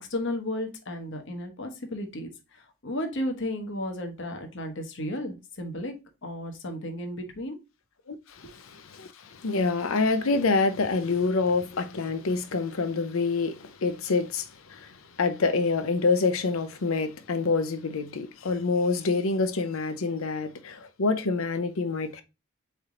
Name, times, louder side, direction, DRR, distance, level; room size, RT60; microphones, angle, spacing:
voice 1, 0.1-5.9 6.2-7.6, left 1 dB, 55° left, 1.0 m, -34 dB
voice 2, 8.1-14.9 15.2-22.2, left 4 dB, 70° left, 0.6 m, -27 dB
4.3 x 3.4 x 3.7 m
head